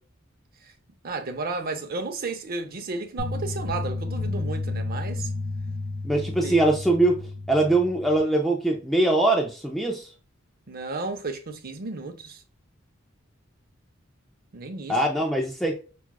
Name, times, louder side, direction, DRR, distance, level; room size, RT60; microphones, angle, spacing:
voice 1, 1.0-5.3 6.4-6.6 10.7-12.4 14.5-15.0, right 3 dB, 50° right, 0.6 m, -33 dB
sound 1, 3.2-8.2, left 2 dB, 40° left, 1.0 m, -31 dB
voice 2, 6.0-7.2 7.5-10.1 14.9-15.8, right 2 dB, ahead, 0.4 m, -22 dB
5.9 x 2.3 x 2.2 m
head